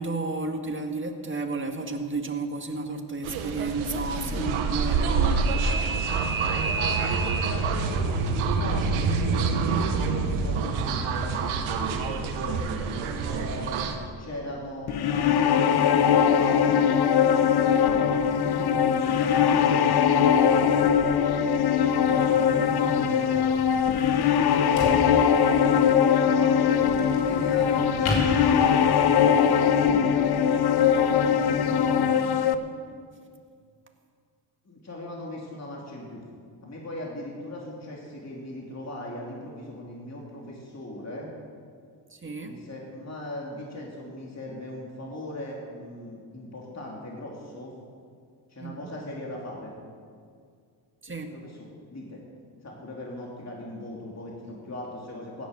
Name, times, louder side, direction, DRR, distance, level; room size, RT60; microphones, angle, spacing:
voice 1, 0.0-5.4 32.4-32.6 42.1-42.6 48.6-48.9 51.0-51.3, right 3 dB, 25° right, 4 dB, 2.0 m, -32 dB
sound 1, 3.2-14.0, right 4 dB, 90° right, 1.4 m, -26 dB
voice 2, 4.2-5.7 6.6-12.7 13.2-13.8 14.2-19.6 21.8-23.5 25.7-26.9 27.2-32.4 34.6-36.2 36.6-41.3 42.4-47.7 48.5-49.8 51.3-52.2 52.6-55.5, left 1 dB, 35° left, -3 dB, 3.4 m, -39 dB
sound 2, 14.9-32.6, left 8 dB, 55° left, 1.0 m, -21 dB
sound 3, 21.0-29.1, left 1 dB, 80° left, 3.9 m, -36 dB
16.0 x 10.5 x 6.8 m, 2.1 s
supercardioid pair, 65°, 47 cm